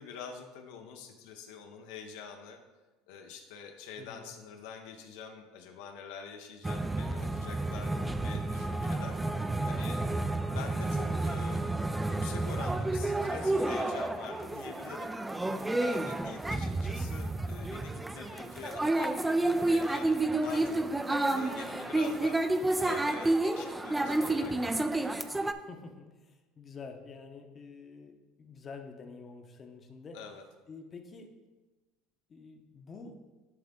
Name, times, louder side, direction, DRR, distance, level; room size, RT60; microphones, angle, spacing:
voice 1, 0.0-2.6 3.1-9.2 9.7-10.0 10.3-11.7 12.0-15.1 15.8-24.5 30.1-30.4, left 6 dB, 80° left, 4 dB, 0.7 m, -46 dB
voice 2, 4.0-4.3 7.6-8.0 15.4-15.8 24.2-24.7 25.5-30.2 30.7-31.3 32.3-33.2, left 4 dB, 30° left, 4 dB, 0.8 m, -48 dB
sound 1, 6.6-25.5, right 2 dB, 10° right, 0.3 m, -30 dB
10.5 x 3.5 x 3.6 m, 1.2 s
supercardioid pair, 120°, 0 cm